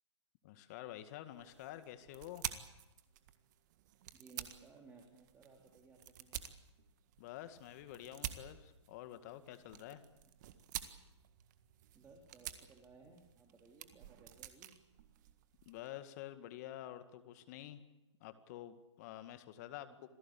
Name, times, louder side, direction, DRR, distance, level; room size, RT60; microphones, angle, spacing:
voice 1, 0.4-2.5 7.2-10.0 15.7-17.8 18.2-19.9, left 13 dB, 35° left, 11 dB, 1.9 m, -49 dB
sound 1, 1.3-15.9, right 12 dB, 40° right, 1.7 m, -50 dB
voice 2, 4.1-6.5 11.9-14.7 19.8-20.0, right 4 dB, 10° right, 2 dB, 3.0 m, -60 dB
27.0 x 17.5 x 8.6 m, 0.97 s
hypercardioid pair, 135°, 15 cm